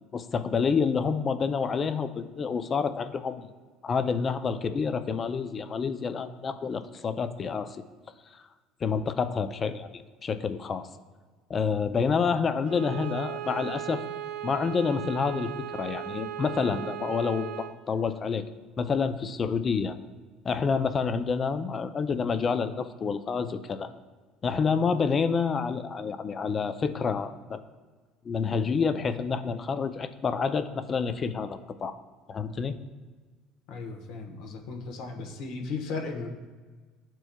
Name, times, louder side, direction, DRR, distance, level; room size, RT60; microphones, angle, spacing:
voice 1, 0.1-3.5 3.8-7.8 8.3-8.4 8.8-9.9 10.2-10.9 11.5-14.0 14.4-18.5 18.8-20.0 20.4-23.9 24.4-27.6 28.2-32.0 32.3-32.8, left 5 dB, 35° left, 10 dB, 0.4 m, -28 dB
Bowed string instrument, 12.6-17.8, right 12 dB, 70° right, 0.5 m, -37 dB
voice 2, 33.7-36.3, left 4 dB, 70° left, 3 dB, 1.1 m, -36 dB
11.5 x 4.5 x 2.3 m, 1.4 s
supercardioid pair, 105°, 0 cm